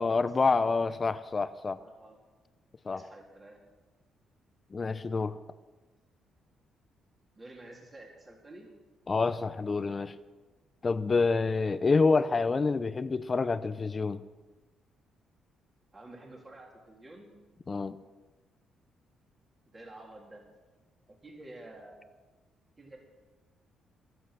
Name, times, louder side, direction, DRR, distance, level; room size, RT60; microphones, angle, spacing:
voice 1, 0.0-1.8 2.8-3.0 4.7-5.4 9.1-10.1 10.8-14.2 17.7-18.0, left 4 dB, 30° left, 14 dB, 0.7 m, -27 dB
voice 2, 1.8-2.2 2.9-3.6 7.3-8.7 15.9-17.4 19.7-20.4 21.1-22.0 22.8-23.0, right 2 dB, 25° right, 0 dB, 3.3 m, -50 dB
24.0 x 8.1 x 6.6 m, 1.2 s
cardioid pair, 90°, 0 cm